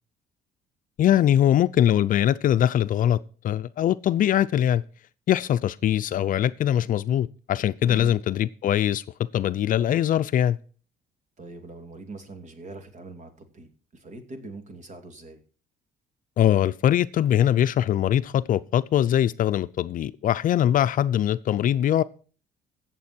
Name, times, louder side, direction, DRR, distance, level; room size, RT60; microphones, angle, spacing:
voice 1, 1.0-3.2 3.4-4.8 5.3-9.0 9.3-10.6 16.4-22.0, left 11 dB, 55° left, 0.5 m, -22 dB
voice 2, 7.8-8.2 11.4-15.4, right 3 dB, 45° right, 2.8 m, -42 dB
16.0 x 7.5 x 4.4 m
cardioid pair, 110°, 17 cm